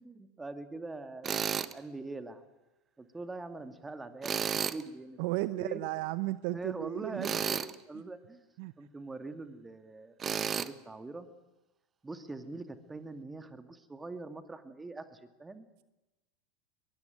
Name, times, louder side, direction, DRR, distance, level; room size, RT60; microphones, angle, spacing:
voice 1, 0.0-1.4 1.7-2.4 3.0-5.8 6.5-8.5 8.8-11.3 12.0-15.7, right 3 dB, 15° right, 9 dB, 2.4 m, -43 dB
Tools, 1.2-1.7 4.2-4.8 7.2-7.7 10.2-10.7, right 7 dB, 30° right, 1.1 m, -32 dB
voice 2, 5.2-7.4 8.6-8.7, right 19 dB, 60° right, 16 dB, 0.7 m, -34 dB
22.0 x 21.0 x 9.3 m, 1.0 s
hypercardioid pair, 90°, 0 cm